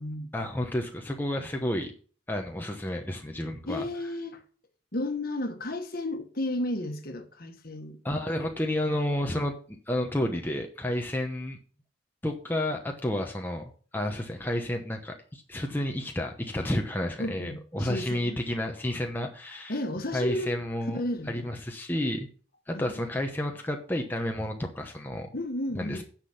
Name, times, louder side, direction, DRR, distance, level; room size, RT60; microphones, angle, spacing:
voice 1, 0.3-1.9 2.3-3.8 8.0-9.6 9.9-11.6 12.2-19.8 20.1-21.0 21.3-22.3 22.7-25.3 25.7-26.0, left 1 dB, 10° left, 0.9 m, -31 dB
voice 2, 3.7-4.4 4.9-8.0 17.2-18.4 19.7-20.5 20.9-21.5 22.7-23.1 25.3-26.0, left 1 dB, 50° left, 1.4 m, -33 dB
9.8 x 6.0 x 5.8 m
head